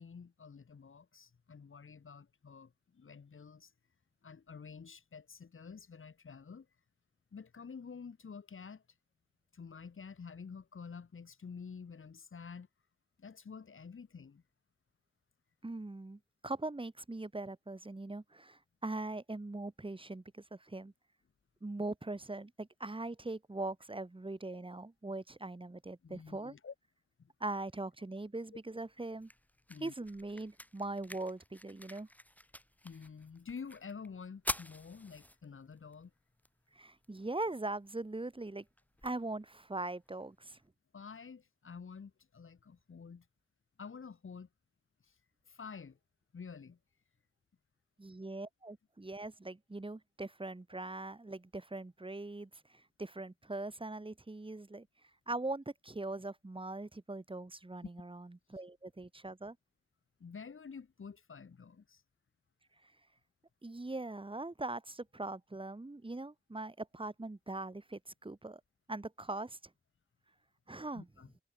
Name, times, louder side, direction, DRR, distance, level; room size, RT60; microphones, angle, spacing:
voice 1, 0.0-3.7 4.2-6.7 7.3-8.8 9.5-12.7 13.2-14.4 26.0-26.7 27.2-27.3 29.7-29.9 32.8-36.1 40.9-43.3 43.8-44.5 45.0-45.2 45.5-46.0 46.3-46.8 60.2-62.0 70.9-71.3, left 5 dB, 80° left, 4.1 m, -49 dB
voice 2, 15.6-20.9 21.6-26.5 27.4-29.3 29.8-32.1 36.7-38.6 39.0-40.6 48.0-54.9 55.3-59.6 62.8-62.9 63.6-68.6 68.9-69.6 70.7-71.1, right 2 dB, 25° right, 4.4 m, -41 dB
sound 1, 28.7-40.7, left 1 dB, 5° left, 3.0 m, -48 dB
wide cardioid pair, 105°, 21 cm